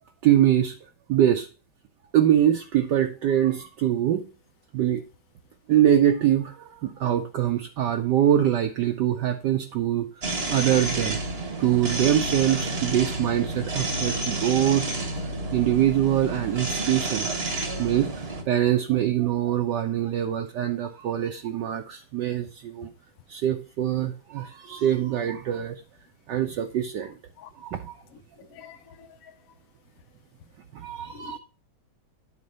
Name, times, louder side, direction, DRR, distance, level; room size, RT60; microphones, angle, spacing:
voice 1, 0.2-0.7 1.1-1.5 2.1-4.2 4.7-5.0 5.7-10.1 10.5-11.2 11.6-14.8 15.5-17.3 17.8-22.9 23.3-25.8 26.3-27.1 27.6-28.0 30.7-31.4, right 11 dB, 70° right, 1.2 m, -23 dB
sound 1, 10.2-18.4, right 2 dB, 40° right, 1.1 m, -30 dB
voice 2, 28.4-29.3 31.1-31.4, left 8 dB, 65° left, 0.9 m, -47 dB
9.7 x 4.2 x 5.3 m
omnidirectional pair, 2.2 m